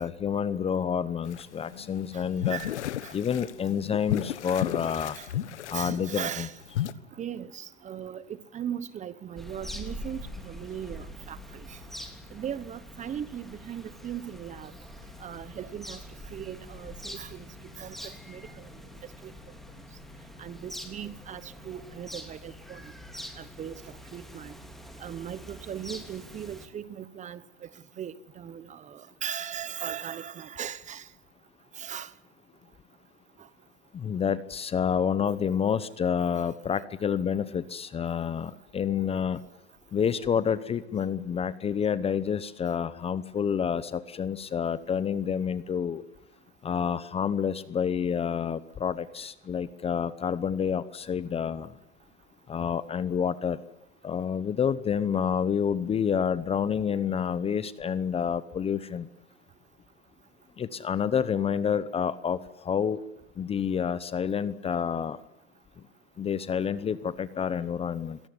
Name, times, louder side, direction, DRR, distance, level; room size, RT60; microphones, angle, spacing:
voice 1, 0.0-2.6 3.1-5.2 5.7-6.5 33.9-39.4 39.9-46.0 46.6-51.7 52.5-53.6 54.0-59.1 60.6-62.4 62.6-63.0 63.4-65.2 66.2-68.2, left 7 dB, 15° left, 0.9 m, -28 dB
sound 1, 1.3-6.9, left 12 dB, 80° left, 1.4 m, -34 dB
voice 2, 5.7-6.6 7.2-11.8 12.3-14.7 15.2-16.0 16.3-17.5 17.8-18.7 19.2-19.3 20.4-22.9 23.4-23.8 24.1-24.5 25.0-27.7 28.0-31.1 31.8-32.1 35.3-35.4 46.8-46.9, right 9 dB, 20° right, 1.0 m, -38 dB
sound 2, 9.4-26.7, equal, ahead, 3.2 m, -44 dB
25.5 x 18.0 x 9.7 m
hypercardioid pair, 125°, 34 cm